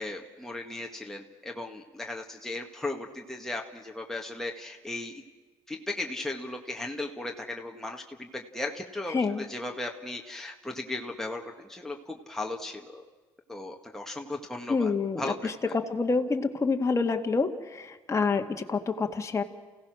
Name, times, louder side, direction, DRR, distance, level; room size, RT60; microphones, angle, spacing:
voice 1, 0.0-5.2 5.7-13.0 13.5-15.5, left 2 dB, 5° left, 1 dB, 1.8 m, -36 dB
voice 2, 9.1-9.4 14.7-19.4, left 4 dB, 30° left, 4 dB, 1.8 m, -27 dB
29.0 x 16.5 x 6.3 m, 1.3 s
supercardioid pair, 75°, 10 cm